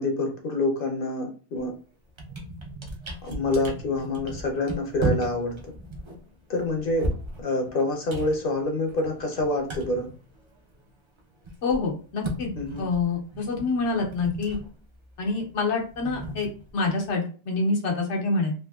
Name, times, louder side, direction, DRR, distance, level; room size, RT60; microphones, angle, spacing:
voice 1, 0.0-1.7 3.2-5.6 6.5-7.1 7.4-10.1 12.6-12.9, left 2 dB, 55° left, 3 dB, 0.8 m, -27 dB
sound 1, 1.5-1.7 2.0-10.9 11.2-17.1, right 1 dB, 35° right, 0.5 m, -36 dB
voice 2, 11.6-12.5 12.8-14.6 15.2-16.5 16.7-18.5, left 3 dB, 85° left, 1 dB, 1.1 m, -26 dB
3.4 x 2.6 x 2.3 m, 0.38 s
omnidirectional pair, 1.2 m